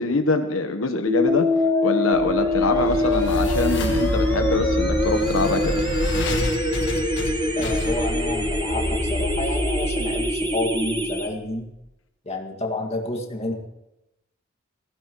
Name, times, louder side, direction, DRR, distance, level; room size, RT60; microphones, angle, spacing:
voice 1, 0.0-1.5 1.8-5.8, left 3 dB, 85° left, 6 dB, 1.2 m, -24 dB
sound 1, 1.1-11.1, left 1 dB, 20° right, 0.9 m, -26 dB
sound 2, 1.3-11.3, left 2 dB, 10° left, 1.3 m, -28 dB
sound 3, 2.1-11.3, left 1 dB, 60° left, 1.6 m, -28 dB
voice 2, 7.6-11.7 12.3-13.5, left 2 dB, 30° left, 1 dB, 2.1 m, -29 dB
18.5 x 16.5 x 3.1 m, 0.90 s
head